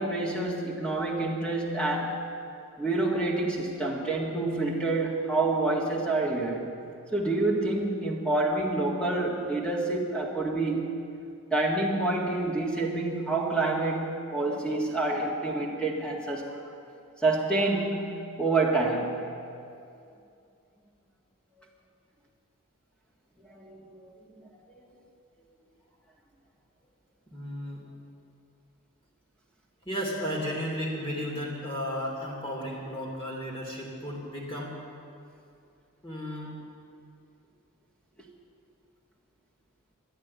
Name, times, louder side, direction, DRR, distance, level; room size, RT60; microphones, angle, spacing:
voice 1, 0.0-2.2 2.8-6.7 7.1-10.9 11.5-16.6 17.2-19.2 23.5-24.1, right 2 dB, 5° left, -2 dB, 1.8 m, -28 dB
voice 2, 27.3-27.8 29.8-34.8 36.0-36.6, equal, 25° left, -3 dB, 2.9 m, -34 dB
12.0 x 11.0 x 9.6 m, 2.5 s
head